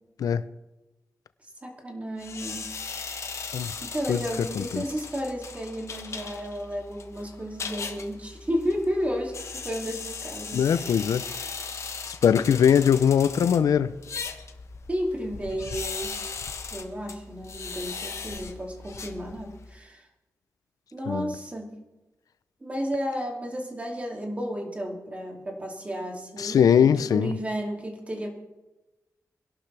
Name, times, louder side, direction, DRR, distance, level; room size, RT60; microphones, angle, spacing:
voice 1, 1.6-2.6 3.8-10.7 14.9-16.1 16.7-20.1 20.9-21.7 22.6-28.3, equal, 20° right, 2.6 m, -32 dB
sound 1, 2.2-19.7, left 5 dB, 50° left, 1.2 m, -38 dB
voice 2, 10.5-11.3 12.1-13.9 21.1-21.3 26.4-27.3, left 8 dB, 80° left, 0.5 m, -21 dB
23.5 x 11.5 x 3.4 m
wide cardioid pair, 125°, 6 cm